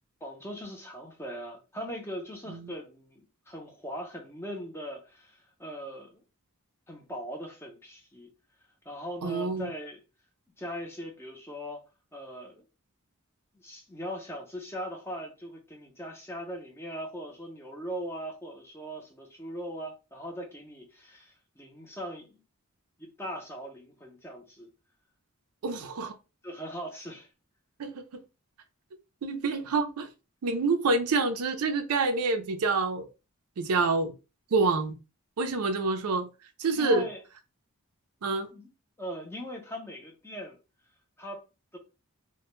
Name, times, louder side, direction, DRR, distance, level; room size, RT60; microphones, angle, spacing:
voice 1, 0.2-6.2 6.9-8.3 8.9-10.0 10.6-11.8 12.1-12.6 13.5-22.4 23.0-24.7 26.4-27.3 33.8-33.9 36.7-37.2 38.3-38.7 39.0-40.6 41.2-41.4 41.7-41.8, equal, 10° left, 0.5 m, -40 dB
voice 2, 9.2-9.7 25.6-26.2 27.8-28.0 29.2-30.1 30.4-33.1 33.6-34.1 34.5-35.0 35.4-36.3 36.6-37.1 38.2-38.5, right 3 dB, 85° right, 0.4 m, -27 dB
2.1 x 2.1 x 3.0 m
head